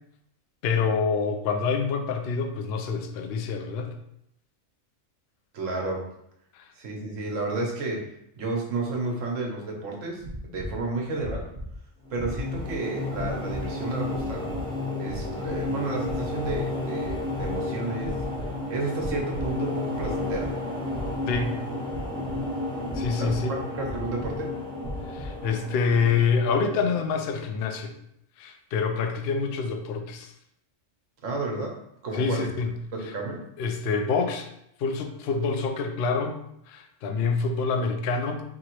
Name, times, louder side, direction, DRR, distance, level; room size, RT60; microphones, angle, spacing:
voice 1, 0.6-3.9 6.5-6.6 21.3-21.6 22.9-23.6 25.1-27.9 28.4-30.3 32.1-32.7 33.6-34.5 34.8-36.4 36.7-38.4, left 5 dB, 65° left, 6 dB, 0.7 m, -26 dB
voice 2, 5.5-6.1 6.7-8.1 8.3-11.5 12.1-14.4 15.0-18.2 18.7-20.5 23.2-24.5 31.2-31.7 32.0-32.5 32.9-33.4, right 3 dB, 75° right, 0 dB, 1.2 m, -32 dB
sound 1, 10.2-10.8 11.1-11.8 12.1-12.7 13.1-13.7 14.1-14.6 15.0-15.7 16.0-16.7 17.0-17.6 17.9-18.5 18.9-19.6 19.9-20.5 20.9-21.4 21.9-22.5 22.8-23.4 23.8-24.3 24.8-25.4, equal, 40° right, 0.9 m, -37 dB
sound 2, 12.0-27.3, left 2 dB, 5° left, 0.4 m, -32 dB
4.7 x 2.9 x 3.0 m, 0.77 s
omnidirectional pair, 1.4 m